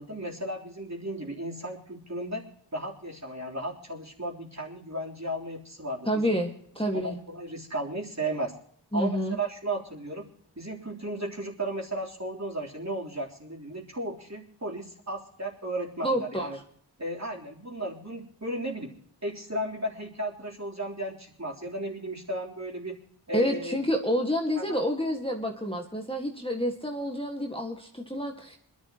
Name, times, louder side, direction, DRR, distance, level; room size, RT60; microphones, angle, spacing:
voice 1, 0.0-2.4 2.7-6.3 6.9-8.5 8.9-10.2 10.6-16.6 17.0-18.9 19.2-23.0 23.3-23.8 24.6-24.8, right 1 dB, 40° right, -2 dB, 3.7 m, -35 dB
voice 2, 6.1-7.2 8.9-9.4 16.0-16.5 23.3-28.6, equal, 10° left, 1 dB, 1.9 m, -29 dB
26.5 x 11.5 x 3.0 m, 0.64 s
wide cardioid pair, 45°, 44 cm